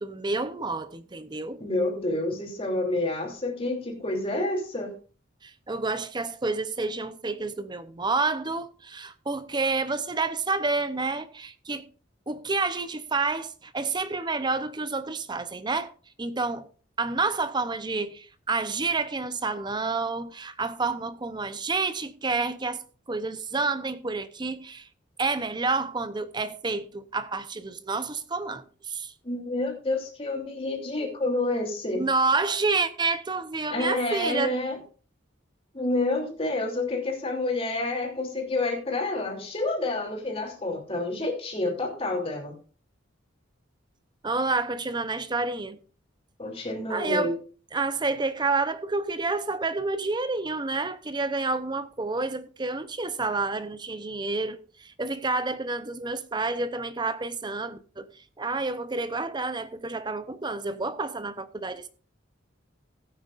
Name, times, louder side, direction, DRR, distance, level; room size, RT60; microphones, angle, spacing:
voice 1, 0.0-1.6 5.4-11.9 12.3-15.9 16.2-16.7 17.0-24.9 25.2-29.1 31.9-34.6 44.2-45.8 46.9-47.3 47.7-58.1 58.4-61.9, right 3 dB, 20° right, 0.7 m, -29 dB
voice 2, 1.6-4.9 29.2-32.0 33.7-34.8 35.7-42.5 46.4-47.3, left 2 dB, 30° left, 3.0 m, -28 dB
16.0 x 9.1 x 2.5 m
head